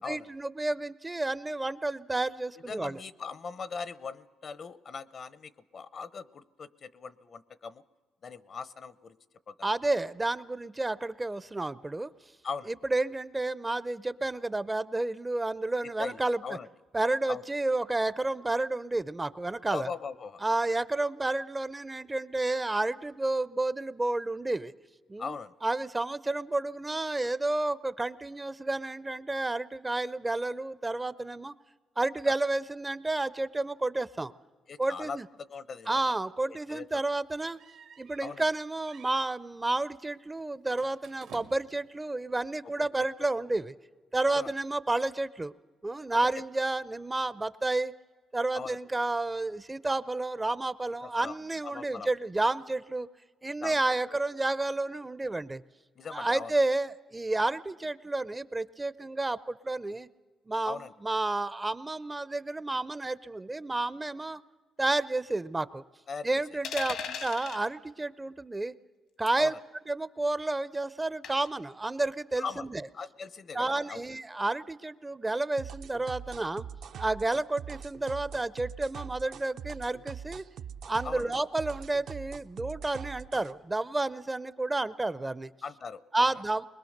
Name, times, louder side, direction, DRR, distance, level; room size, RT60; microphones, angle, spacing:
voice 1, 0.1-3.0 9.6-12.1 12.7-16.4 16.9-19.9 20.4-24.7 25.1-25.4 25.6-31.5 32.0-34.3 34.8-35.3 35.9-37.6 38.0-43.8 44.1-45.5 45.8-47.9 48.3-53.1 53.4-55.6 56.1-60.1 60.5-64.4 64.8-65.8 66.2-68.7 69.2-69.5 69.9-72.8 73.5-76.7 77.0-80.4 80.9-85.5 86.1-86.7, right 2 dB, 20° right, 16 dB, 0.5 m, -31 dB
voice 2, 2.7-7.8 8.2-9.2 9.5-9.7 12.4-12.7 15.8-16.7 17.3-17.4 19.7-20.4 21.0-21.1 25.2-25.5 34.7-36.1 36.5-37.0 38.2-38.5 42.8-43.3 44.3-44.5 46.1-46.3 48.5-48.8 51.0-51.3 51.6-52.1 53.6-53.8 54.1-54.2 56.0-56.5 60.6-60.9 66.1-66.4 66.8-66.9 69.4-69.6 72.4-72.7 72.9-74.0 81.0-81.3 85.6-86.3, left 5 dB, 50° left, 17 dB, 0.7 m, -40 dB
sound 1, 37.4-38.6 38.9-39.3 40.6-41.8, right 7 dB, 85° right, 1.8 m, -52 dB
sound 2, 66.6-67.6 69.3-69.5 71.2-71.6, left 6 dB, 80° left, 1.7 m, -37 dB
sound 3, 75.6-83.5, right 8 dB, 65° right, 0.7 m, -43 dB
21.5 x 21.0 x 6.6 m, 1.4 s
cardioid pair, 90°, 0 cm